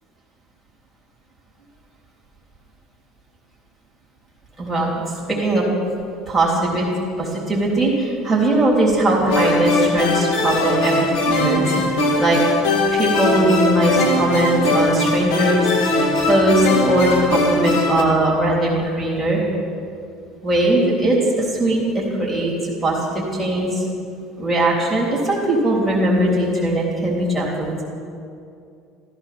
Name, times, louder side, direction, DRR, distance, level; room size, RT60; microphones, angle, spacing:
voice 1, 4.6-5.6 6.3-6.9 7.2-12.4 12.9-19.4 20.4-22.5 22.8-23.8 24.4-27.8, right 1 dB, ahead, -6 dB, 3.5 m, -20 dB
sound 1, 9.3-18.0, left 2 dB, 90° left, 2.2 m, -20 dB
14.5 x 14.5 x 6.0 m, 2.4 s
cardioid pair, 165°, 0 cm